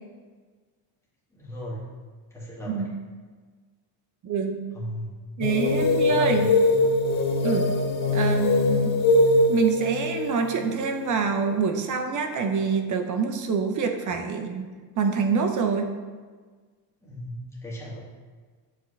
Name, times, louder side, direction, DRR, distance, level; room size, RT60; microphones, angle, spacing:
voice 1, 1.3-1.9 2.3-2.9 4.7-5.1 6.0-6.5 17.0-18.0, equal, 5° left, -6 dB, 2.1 m, -37 dB
voice 2, 4.2-4.6 5.4-6.5 7.4-7.7 8.1-8.9 9.5-15.9, right 5 dB, 40° right, 6 dB, 0.8 m, -26 dB
sound 1, 5.4-11.8, left 2 dB, 65° left, 1.1 m, -22 dB
7.8 x 7.1 x 3.3 m, 1.5 s
cardioid pair, 135°, 45 cm